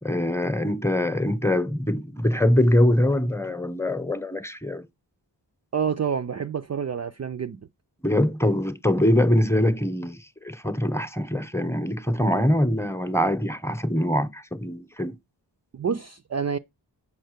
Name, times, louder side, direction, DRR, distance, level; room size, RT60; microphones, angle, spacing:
voice 1, 0.0-4.8 8.0-15.1, left 1 dB, 5° left, 0.9 m, -23 dB
voice 2, 5.7-7.7 15.7-16.6, right 7 dB, 40° right, 0.4 m, -28 dB
7.2 x 5.6 x 6.6 m
wide cardioid pair, 95°, 44 cm